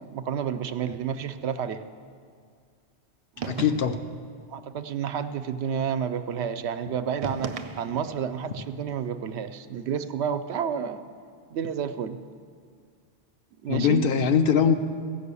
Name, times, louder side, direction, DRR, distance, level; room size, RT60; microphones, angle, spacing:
voice 1, 0.0-1.8 3.4-3.5 4.5-11.0 11.5-12.2 13.6-14.0, right 7 dB, 85° right, 10 dB, 0.9 m, -30 dB
voice 2, 3.4-4.0 13.7-14.7, left 7 dB, 65° left, 8 dB, 0.8 m, -22 dB
sound 1, 3.4-4.2 7.2-8.2, right 5 dB, 50° right, 0.4 m, -35 dB
14.5 x 5.4 x 8.3 m, 2.2 s
omnidirectional pair, 1.1 m